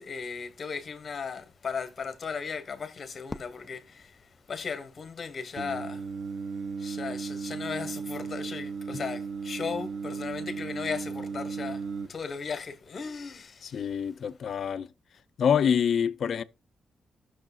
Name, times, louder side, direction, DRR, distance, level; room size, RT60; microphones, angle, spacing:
voice 1, 0.0-6.1 6.8-13.9, left 5 dB, 40° left, 1.2 m, -37 dB
Fireworks, 3.3-5.5, left 1 dB, 10° left, 0.6 m, -46 dB
Singing, 5.5-12.1, right 5 dB, 75° right, 1.1 m, -35 dB
voice 2, 13.6-14.9 15.4-16.4, left 7 dB, 60° left, 0.6 m, -26 dB
17.5 x 6.5 x 2.4 m
wide cardioid pair, 170°, 0 cm